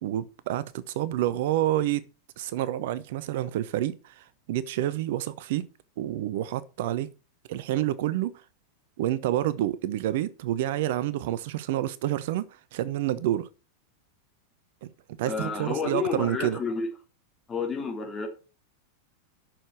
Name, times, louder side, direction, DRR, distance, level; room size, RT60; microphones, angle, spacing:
voice 1, 0.0-2.0 2.4-5.7 6.0-7.1 7.5-8.4 9.0-13.5 14.8-14.9 15.2-16.6, right 13 dB, 50° right, 0.6 m, -28 dB
voice 2, 15.2-16.9 17.5-18.3, left 5 dB, 20° left, 3.3 m, -30 dB
8.9 x 6.6 x 6.1 m
figure-of-eight pair, 90°, 0 cm